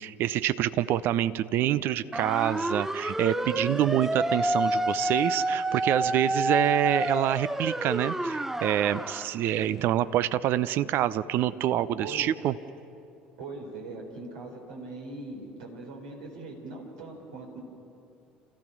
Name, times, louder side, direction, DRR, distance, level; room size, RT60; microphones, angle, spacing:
voice 1, 0.0-12.5, right 12 dB, 55° right, 16 dB, 0.6 m, -26 dB
sound 1, 2.1-9.3, right 1 dB, 10° right, 0.5 m, -29 dB
voice 2, 3.5-4.0 12.0-12.3 13.4-17.6, right 3 dB, 75° right, 1 dB, 3.8 m, -40 dB
28.5 x 15.5 x 6.1 m, 2.7 s
hypercardioid pair, 60°, 4 cm